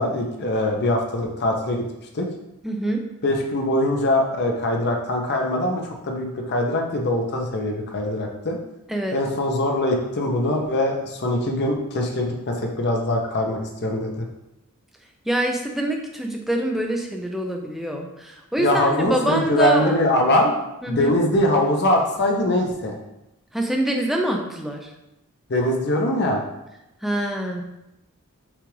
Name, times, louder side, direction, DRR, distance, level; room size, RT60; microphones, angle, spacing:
voice 1, 0.0-1.8 2.1-2.3 3.2-8.6 9.1-14.2 18.6-20.5 20.9-23.0 25.5-26.4, left 1 dB, 50° left, 1 dB, 0.6 m, -22 dB
voice 2, 2.6-3.0 8.9-9.2 15.3-20.0 20.8-21.1 23.5-24.9 27.0-27.6, right 1 dB, ahead, 1 dB, 0.4 m, -25 dB
5.9 x 2.4 x 3.2 m, 0.91 s
head